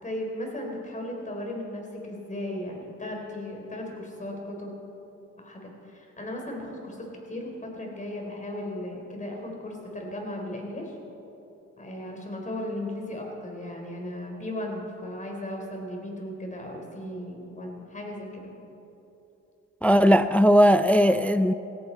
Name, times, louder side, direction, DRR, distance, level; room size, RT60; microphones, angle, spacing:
voice 1, 0.0-4.7 5.4-11.0 11.8-18.5, left 1 dB, 25° left, 0 dB, 3.8 m, -36 dB
voice 2, 19.8-21.5, equal, 5° left, 12 dB, 0.4 m, -18 dB
17.5 x 15.5 x 4.3 m, 3.0 s
cardioid pair, 90°, 30 cm